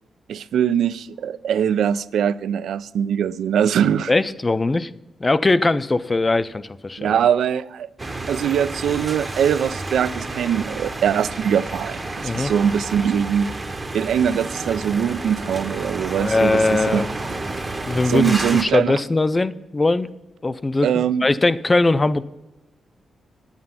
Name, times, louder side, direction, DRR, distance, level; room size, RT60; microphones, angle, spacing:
voice 1, 0.3-4.1 7.0-7.9 8.3-13.5 13.9-17.1 18.1-19.0 20.8-21.2, right 8 dB, 85° right, 0.3 m, -22 dB
voice 2, 4.1-4.9 5.2-7.2 12.2-12.5 16.2-17.1 17.9-20.1 20.4-22.2, left 2 dB, 20° left, 0.3 m, -20 dB
sound 1, 8.0-18.6, right 2 dB, 20° right, 0.7 m, -30 dB
9.6 x 8.8 x 5.6 m
wide cardioid pair, 170°, 0 cm